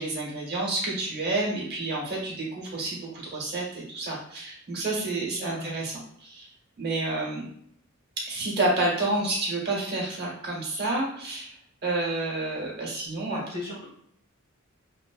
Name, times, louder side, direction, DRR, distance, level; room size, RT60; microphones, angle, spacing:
voice 1, 0.0-5.9 6.2-6.5 6.8-7.5 8.3-11.5 11.8-13.4, right 2 dB, 50° right, -4 dB, 0.9 m, -29 dB
voice 2, 5.3-5.7 13.3-13.8, left 2 dB, 50° left, -10 dB, 1.3 m, -37 dB
3.0 x 2.1 x 2.3 m, 0.66 s
head